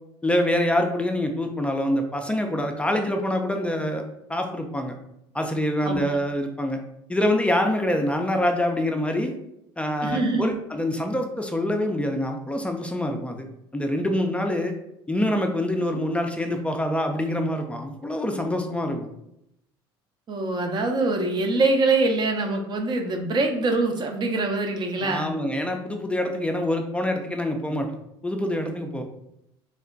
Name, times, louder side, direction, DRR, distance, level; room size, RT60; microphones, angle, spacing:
voice 1, 0.2-4.0 4.3-5.0 5.3-6.8 7.1-9.3 9.8-13.5 13.7-14.7 15.1-19.1 25.0-27.9 28.2-29.0, left 1 dB, 10° left, 3 dB, 0.5 m, -25 dB
voice 2, 10.0-10.5 20.3-25.3, right 2 dB, 35° right, 4 dB, 0.7 m, -24 dB
3.3 x 2.1 x 3.8 m, 0.80 s
hypercardioid pair, 75°, 12 cm